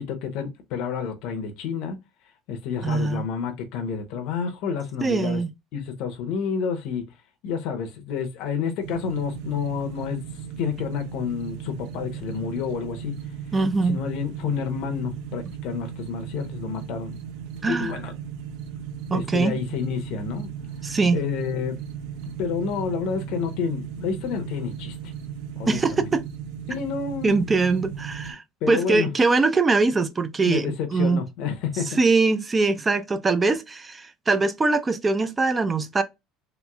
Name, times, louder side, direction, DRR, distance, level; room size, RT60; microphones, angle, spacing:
voice 1, 0.0-2.0 2.5-5.4 5.7-7.0 7.4-10.2 10.6-13.2 13.8-17.2 17.6-18.1 19.1-20.5 21.1-21.8 22.4-25.1 25.6-26.1 26.7-27.3 28.6-29.1 30.4-32.0, left 6 dB, 55° left, 0.7 m, -29 dB
voice 2, 2.8-3.3 5.0-5.5 13.5-14.0 17.6-17.9 19.1-19.6 20.8-21.2 25.7-26.2 27.2-28.4 28.7-31.2 32.0-36.0, right 3 dB, 15° right, 0.3 m, -22 dB
sound 1, 8.8-28.3, right 8 dB, 70° right, 0.5 m, -36 dB
3.0 x 3.0 x 2.2 m
cardioid pair, 170°, 0 cm